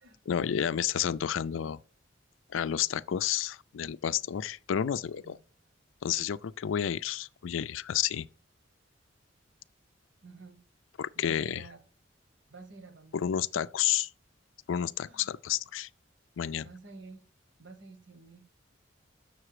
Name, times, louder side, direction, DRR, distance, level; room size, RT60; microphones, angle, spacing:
voice 1, 0.3-1.8 2.5-5.4 6.0-8.3 11.0-11.6 13.1-14.1 14.7-15.9 16.4-16.7, left 9 dB, 90° left, 0.4 m, -30 dB
voice 2, 10.2-10.6 11.1-11.8 12.5-13.1 15.0-15.4 16.5-17.2 17.6-18.4 18.7-18.8, right 3 dB, 65° right, 1.2 m, -50 dB
7.6 x 6.6 x 4.8 m
head